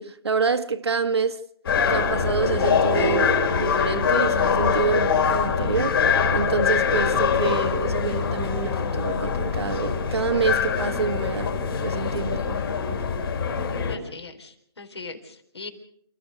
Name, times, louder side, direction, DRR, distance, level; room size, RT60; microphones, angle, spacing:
voice 1, 0.0-1.4 1.9-11.5 11.8-12.6, right 5 dB, 80° right, 1.6 m, -27 dB
sound 1, 1.7-14.0, left 6 dB, 60° left, 3.8 m, -23 dB
voice 2, 13.9-15.7, left 4 dB, 80° left, 4.0 m, -40 dB
29.0 x 14.0 x 6.6 m
figure-of-eight pair, 140°, 14 cm